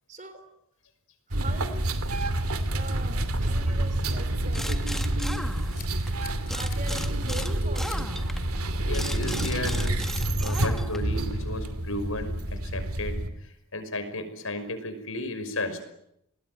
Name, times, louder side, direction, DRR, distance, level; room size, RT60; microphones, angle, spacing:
voice 1, 0.1-0.4 1.3-1.9 2.6-4.9 5.3-5.9 6.5-8.1, right 2 dB, 35° right, 11 dB, 3.4 m, -42 dB
sound 1, 1.3-13.3, right 1 dB, 80° right, 2.8 m, -28 dB
sound 2, 4.5-6.1 6.5-11.2, left 1 dB, ahead, 1.6 m, -37 dB
Scissors, 5.5-7.0 7.3-8.1 8.4-8.6 9.4-9.8 10.1-10.6, left 9 dB, 40° left, 4.2 m, -47 dB
voice 2, 8.9-9.9 10.4-15.8, left 2 dB, 70° left, 9 dB, 5.7 m, -34 dB
30.0 x 21.0 x 9.5 m, 0.78 s
head